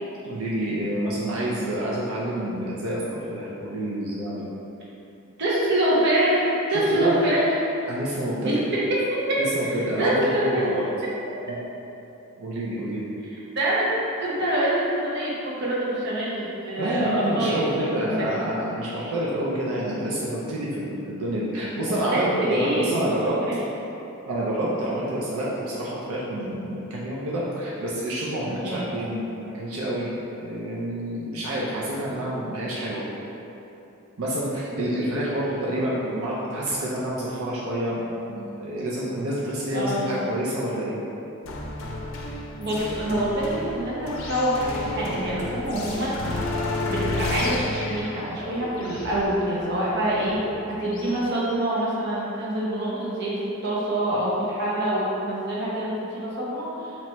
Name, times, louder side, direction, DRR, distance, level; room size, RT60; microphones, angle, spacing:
voice 1, 0.2-4.4 6.7-7.4 7.9-8.6 9.5-10.8 11.5-11.6 12.4-13.1 16.8-23.4 24.3-29.3 29.5-30.1 30.4-33.0 34.2-41.0, right 1 dB, 85° right, -6 dB, 0.5 m, -28 dB
voice 2, 5.4-7.7 8.4-8.6 8.9-9.4 10.0-10.7 13.6-13.9 14.2-18.3 22.1-22.9 23.4-23.6 28.4-29.0 39.7-40.3 42.6-46.1 46.8-50.4 50.7-53.3 53.6-57.0, right 1 dB, 55° right, -7 dB, 0.9 m, -25 dB
sound 1, 41.5-51.2, left 2 dB, 65° left, 0.5 m, -32 dB
3.0 x 2.9 x 4.4 m, 2.9 s
head